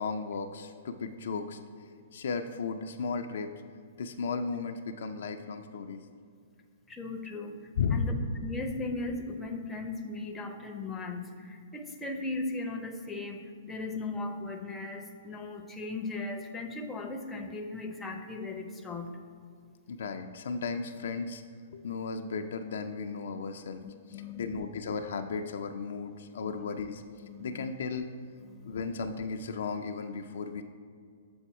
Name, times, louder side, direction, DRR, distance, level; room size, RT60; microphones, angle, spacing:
voice 1, 0.0-1.6 2.1-3.5 4.0-6.1 7.8-8.1 19.9-21.4 21.7-23.8 24.1-27.0 27.4-28.1 28.6-30.6, left 5 dB, 60° left, 6 dB, 0.3 m, -35 dB
voice 2, 6.9-7.6 7.9-8.1 8.4-19.1 23.8-24.6 26.4-26.6 27.2-27.7 28.4-28.8, left 3 dB, 10° left, 4 dB, 0.6 m, -38 dB
7.0 x 4.0 x 4.5 m, 2.2 s
figure-of-eight pair, 115°, 0 cm